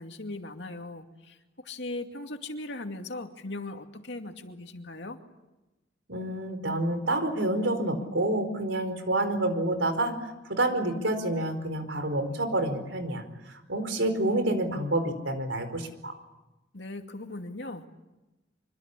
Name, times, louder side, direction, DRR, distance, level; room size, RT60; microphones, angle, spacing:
voice 1, 0.0-5.2 16.7-18.0, left 2 dB, 70° left, 5 dB, 2.5 m, -39 dB
voice 2, 6.1-16.2, right 1 dB, 90° right, 8 dB, 4.8 m, -28 dB
25.5 x 25.0 x 8.5 m, 1.0 s
head